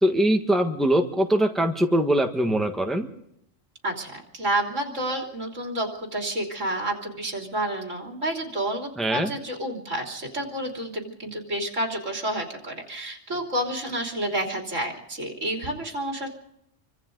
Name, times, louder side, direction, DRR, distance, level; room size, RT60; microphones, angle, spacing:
voice 1, 0.0-3.1 9.0-9.3, right 1 dB, ahead, 3 dB, 1.5 m, -22 dB
voice 2, 3.8-16.3, right 1 dB, 80° right, 1 dB, 3.7 m, -30 dB
27.0 x 25.0 x 3.9 m, 0.78 s
omnidirectional pair, 1.3 m